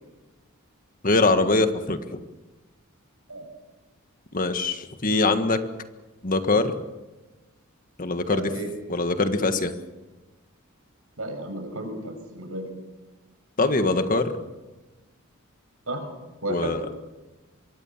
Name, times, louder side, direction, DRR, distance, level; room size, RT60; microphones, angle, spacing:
voice 1, 1.0-2.2 4.3-5.6 6.2-6.7 8.0-8.5 8.9-9.7 13.6-14.3 16.5-16.8, left 3 dB, 40° left, 8 dB, 1.6 m, -23 dB
voice 2, 8.3-8.7 11.2-12.7 15.9-16.1 16.4-16.8, right 1 dB, 90° right, 6 dB, 6.3 m, -33 dB
25.0 x 23.0 x 7.4 m, 1.2 s
head